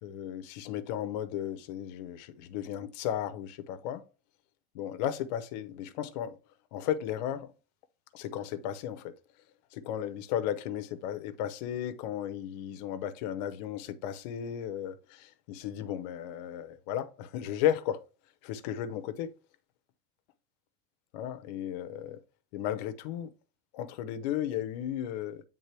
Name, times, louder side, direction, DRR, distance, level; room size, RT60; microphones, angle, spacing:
voice 1, 0.0-4.0 4.7-6.4 6.7-7.5 8.1-9.1 9.7-18.0 18.4-19.3 21.1-22.2 22.5-23.3 23.7-25.4, left 10 dB, 45° left, 0.7 m, -34 dB
8.2 x 3.6 x 3.2 m
supercardioid pair, 175°, 29 cm